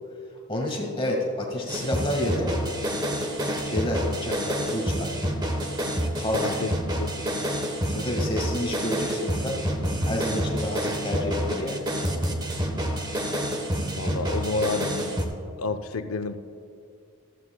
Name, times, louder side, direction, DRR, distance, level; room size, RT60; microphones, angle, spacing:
voice 1, 0.5-2.6 3.6-5.2 6.2-6.6 7.9-9.6 10.0-11.8, left 1 dB, 25° left, 0 dB, 1.6 m, -29 dB
sound 1, 1.7-15.3, equal, 20° right, 1.0 m, -28 dB
voice 2, 6.3-6.7 7.0-7.3 13.9-15.2 15.6-16.4, left 3 dB, 80° left, 9 dB, 0.6 m, -30 dB
14.0 x 14.0 x 2.2 m, 2.5 s
head